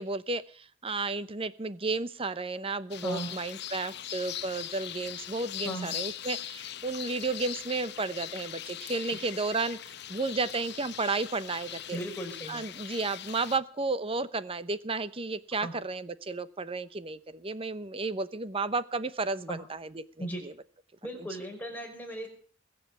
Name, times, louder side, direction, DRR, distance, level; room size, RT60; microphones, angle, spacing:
voice 1, 0.0-12.0 12.5-20.0 20.4-20.5, right 3 dB, 30° right, 15 dB, 0.8 m, -33 dB
sound 1, 2.9-13.6, left 11 dB, 60° left, 0.9 m, -41 dB
voice 2, 3.0-3.3 5.6-5.9 9.1-9.2 11.9-12.6 15.6-15.7 19.5-19.6 20.2-20.4 21.0-22.3, right 1 dB, 10° left, 0 dB, 5.2 m, -37 dB
21.5 x 7.9 x 8.3 m, 0.43 s
head